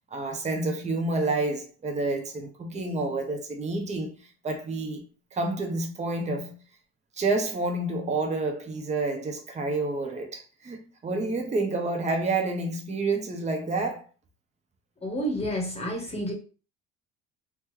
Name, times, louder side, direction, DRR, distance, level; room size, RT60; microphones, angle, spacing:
voice 1, 0.1-4.1 4.4-5.0 5.3-6.5 7.2-14.1, right 2 dB, 20° right, 0.8 m, -29 dB
voice 2, 15.0-16.3, equal, 20° left, 1.1 m, -30 dB
2.9 x 2.3 x 3.1 m
hypercardioid pair, 75°, 31 cm